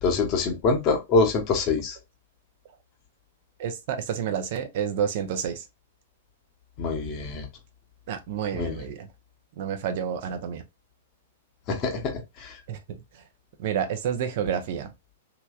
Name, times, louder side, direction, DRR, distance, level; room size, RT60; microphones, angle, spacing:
voice 1, 0.0-2.0 6.8-7.5 8.5-8.8 11.7-12.6, left 4 dB, 35° left, 1.0 m, -25 dB
voice 2, 3.6-5.7 8.1-9.1 9.6-10.6 12.7-13.0 13.6-14.9, right 8 dB, 45° right, 0.7 m, -29 dB
3.2 x 2.9 x 2.3 m
figure-of-eight pair, 105°, 0 cm